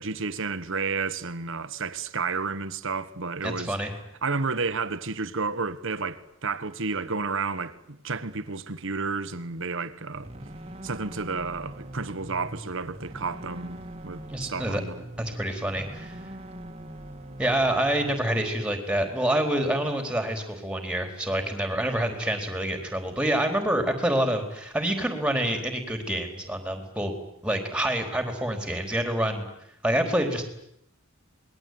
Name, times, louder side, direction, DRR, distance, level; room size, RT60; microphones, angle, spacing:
voice 1, 0.0-3.7 4.2-10.3 10.8-15.0, right 4 dB, 65° right, 1.4 m, -31 dB
voice 2, 3.4-3.9 14.3-14.8 15.2-16.2 17.4-27.1 27.4-29.5 29.8-30.4, right 1 dB, 5° right, 4.2 m, -27 dB
sound 1, 10.1-18.1, right 1 dB, 30° right, 2.1 m, -42 dB
27.0 x 21.0 x 9.6 m
head